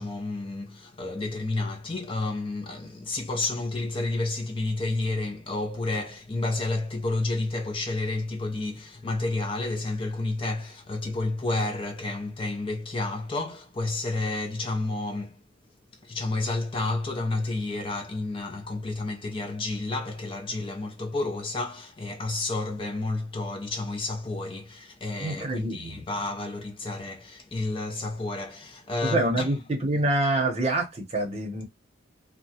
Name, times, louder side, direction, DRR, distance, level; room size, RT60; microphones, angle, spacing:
voice 1, 0.0-15.4 16.0-29.5, left 2 dB, 25° left, 0.5 m, -30 dB
voice 2, 25.2-26.0 29.0-31.6, right 2 dB, 35° right, 0.8 m, -26 dB
2.8 x 2.1 x 2.7 m
head